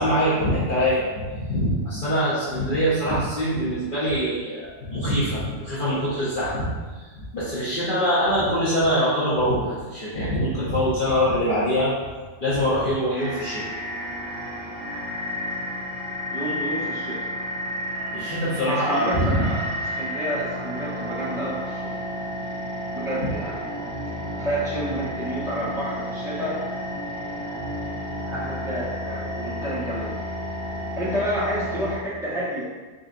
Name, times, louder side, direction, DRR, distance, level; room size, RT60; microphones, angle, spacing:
voice 1, 0.0-6.7 7.1-11.9 12.4-13.6 18.1-19.4, equal, 45° left, -9 dB, 0.9 m, -23 dB
sound 1, 13.2-32.0, equal, 65° right, 1.1 m, -31 dB
voice 2, 16.3-17.3 18.7-21.9 22.9-23.6 24.4-26.6 28.3-30.1 31.0-32.6, equal, 5° right, -10 dB, 1.3 m, -30 dB
3.9 x 3.8 x 2.5 m, 1.4 s
omnidirectional pair, 1.3 m